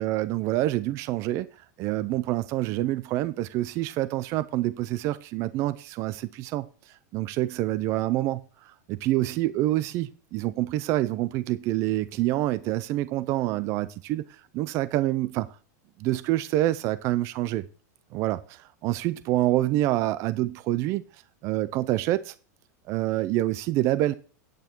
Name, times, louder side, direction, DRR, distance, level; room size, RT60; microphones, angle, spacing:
voice 1, 0.0-15.5 16.0-17.7 18.1-21.0 21.4-22.3 22.9-24.1, right 15 dB, 30° right, 0.4 m, -27 dB
9.2 x 8.3 x 4.4 m
supercardioid pair, 160°, 10 cm